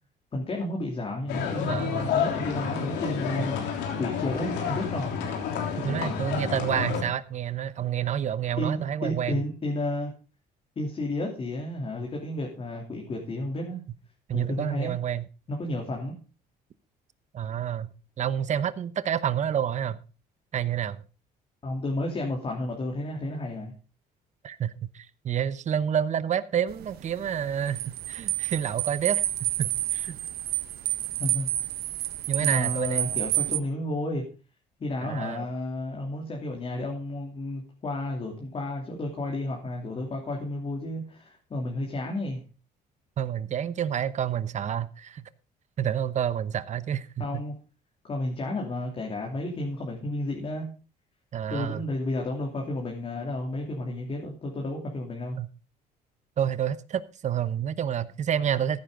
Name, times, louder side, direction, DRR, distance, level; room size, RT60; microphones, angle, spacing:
voice 1, 0.3-3.6 4.0-5.1 8.6-10.1 10.8-13.8 14.3-14.9 15.5-16.1 21.6-23.7 31.2-31.5 32.4-34.2 34.8-42.4 47.2-47.5 48.0-50.7 51.5-55.4, left 1 dB, 35° left, 3.0 m, -32 dB
sound 1, 1.3-7.0, left 7 dB, 90° left, 3.3 m, -30 dB
voice 2, 1.7-2.1 3.4-3.5 5.8-9.4 14.3-15.3 17.3-17.9 18.2-20.0 20.5-21.0 24.4-30.2 32.3-33.1 35.0-35.5 43.2-45.2 45.8-47.3 51.3-51.8 55.4-55.5 56.4-58.8, right 9 dB, 45° right, 0.9 m, -29 dB
sound 2, 26.7-33.6, right 15 dB, 70° right, 0.8 m, -29 dB
15.0 x 9.4 x 3.8 m
cardioid pair, 110°, 17 cm